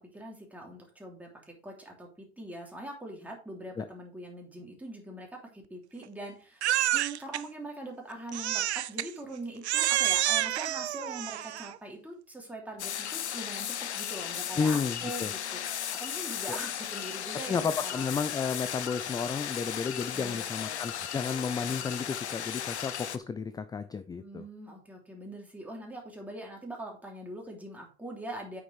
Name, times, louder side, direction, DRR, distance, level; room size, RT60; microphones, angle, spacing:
voice 1, 0.0-18.0 20.1-20.9 24.2-28.6, right 1 dB, 5° right, -1 dB, 3.4 m, -43 dB
Crying sobbing, 6.6-7.4 8.3-9.1 9.6-11.8, right 13 dB, 75° right, 0.5 m, -28 dB
sound 1, 12.8-23.2, left 9 dB, 80° left, 0.8 m, -36 dB
voice 2, 14.6-15.3 16.5-16.6 17.5-24.4, left 5 dB, 10° left, 12 dB, 0.5 m, -32 dB
8.8 x 6.7 x 3.5 m, 0.37 s
figure-of-eight pair, 85°, 33 cm